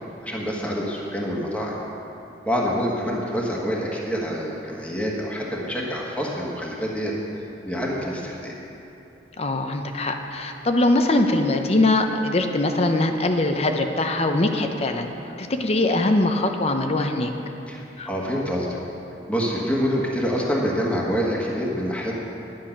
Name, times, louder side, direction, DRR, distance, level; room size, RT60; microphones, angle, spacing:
voice 1, 0.2-1.7 2.4-8.5 17.7-18.7 19.3-22.1, equal, 10° left, -4 dB, 1.5 m, -26 dB
voice 2, 9.4-15.1 15.4-17.3 18.0-18.1, left 2 dB, 35° left, 5 dB, 0.7 m, -22 dB
10.5 x 10.5 x 6.0 m, 2.9 s
head